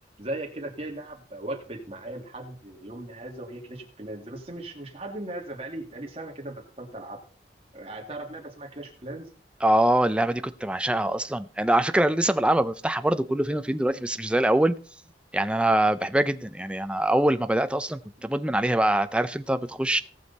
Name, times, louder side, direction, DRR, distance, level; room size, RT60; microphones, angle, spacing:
voice 1, 0.2-7.2 7.7-9.3 18.2-18.3, right 1 dB, 35° right, 1 dB, 2.3 m, -38 dB
voice 2, 9.6-14.8 15.3-20.0, right 1 dB, 5° right, 11 dB, 0.4 m, -24 dB
17.5 x 6.3 x 4.1 m, 0.41 s
head